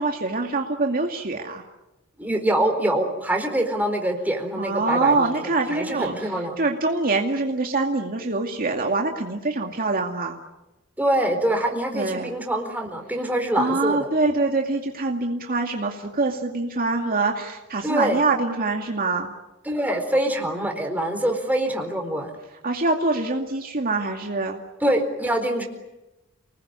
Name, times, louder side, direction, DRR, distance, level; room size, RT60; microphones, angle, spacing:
voice 1, 0.0-1.6 4.6-6.1 6.6-10.4 11.9-12.3 13.5-19.3 22.6-24.6, right 3 dB, 45° right, 2 dB, 2.3 m, -24 dB
voice 2, 2.2-6.6 11.0-14.1 17.8-18.2 19.6-22.3 24.8-25.6, right 1 dB, 10° right, 3 dB, 4.3 m, -24 dB
29.5 x 20.0 x 9.7 m, 1.0 s
head